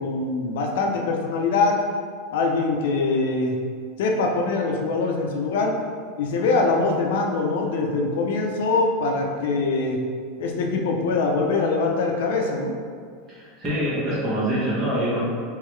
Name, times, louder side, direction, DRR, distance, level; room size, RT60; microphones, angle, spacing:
voice 1, 0.0-1.8 2.3-3.6 4.0-5.7 6.2-10.0 10.4-12.7, left 3 dB, 75° left, 1 dB, 0.5 m, -23 dB
voice 2, 13.3-15.3, right 1 dB, 20° right, -8 dB, 1.3 m, -25 dB
3.7 x 3.1 x 3.2 m, 2.1 s
supercardioid pair, 155°, 0 cm